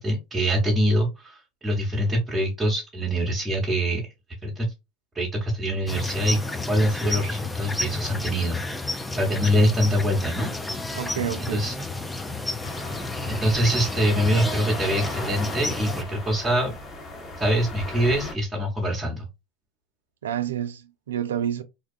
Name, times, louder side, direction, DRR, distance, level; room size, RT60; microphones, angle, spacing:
voice 1, 0.0-4.0 4.4-4.7 5.1-6.4 6.7-8.6 8.8-10.5 11.5-11.7 13.3-16.7 17.4-19.3, equal, 15° right, 0.9 m, -24 dB
sound 1, 5.9-16.0, left 2 dB, 10° left, 0.4 m, -31 dB
voice 2, 11.0-11.6 20.2-21.6, right 9 dB, 80° right, 0.4 m, -29 dB
sound 2, 12.6-18.3, left 2 dB, 45° left, 1.2 m, -36 dB
2.6 x 2.2 x 2.4 m
hypercardioid pair, 90°, 0 cm